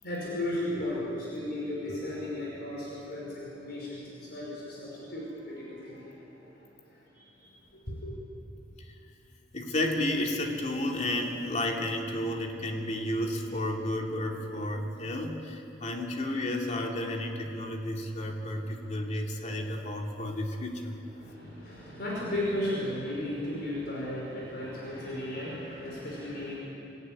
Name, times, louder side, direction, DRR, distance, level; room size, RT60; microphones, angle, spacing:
voice 1, 0.0-8.1 21.1-26.6, left 1 dB, 60° left, -5 dB, 5.6 m, -35 dB
voice 2, 9.5-21.0, left 1 dB, 40° left, 1 dB, 2.7 m, -32 dB
25.0 x 15.0 x 9.8 m, 2.7 s
head